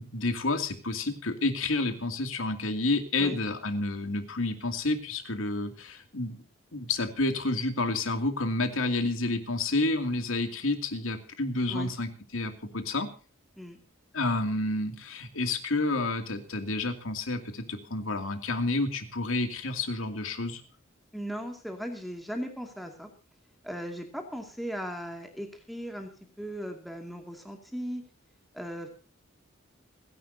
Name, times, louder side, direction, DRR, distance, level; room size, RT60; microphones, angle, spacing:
voice 1, 0.0-6.4 6.7-13.1 14.1-20.6, left 2 dB, 85° left, 7 dB, 2.5 m, -30 dB
voice 2, 21.1-23.1 23.6-26.1 26.4-28.0 28.5-28.9, equal, ahead, 3 dB, 2.3 m, -37 dB
29.5 x 11.0 x 2.7 m, 0.37 s
head